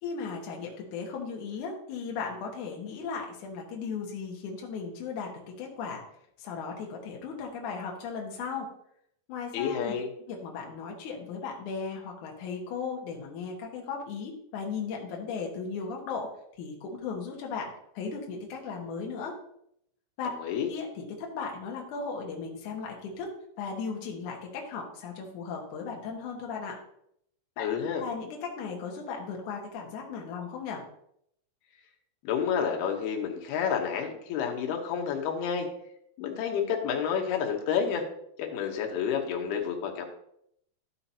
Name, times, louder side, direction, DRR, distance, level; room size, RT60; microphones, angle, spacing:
voice 1, 0.0-5.3 5.6-6.0 6.4-8.7 9.3-9.9 10.3-16.3 16.6-19.4 20.2-20.3 20.7-23.3 23.6-26.8 27.6-27.7 28.0-30.8, left 5 dB, 60° left, 0 dB, 2.5 m, -36 dB
voice 2, 9.5-10.1 20.4-20.7 27.6-28.0 32.2-35.7 36.2-38.0 38.4-40.1, left 7 dB, 90° left, 2 dB, 3.0 m, -29 dB
13.0 x 5.7 x 2.8 m, 0.72 s
omnidirectional pair, 4.4 m